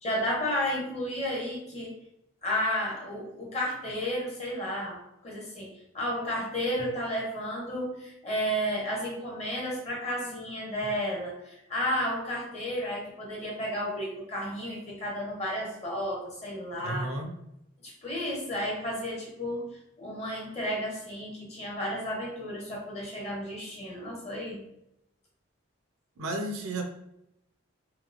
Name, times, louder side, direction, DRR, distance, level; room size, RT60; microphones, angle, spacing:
voice 1, 0.0-1.9 2.4-17.1 17.8-19.6 20.0-24.6, equal, 30° left, -3 dB, 0.9 m, -32 dB
voice 2, 16.8-17.3 21.9-22.0 26.2-26.8, right 2 dB, 85° right, 4 dB, 0.6 m, -33 dB
2.9 x 2.8 x 2.5 m, 0.81 s
head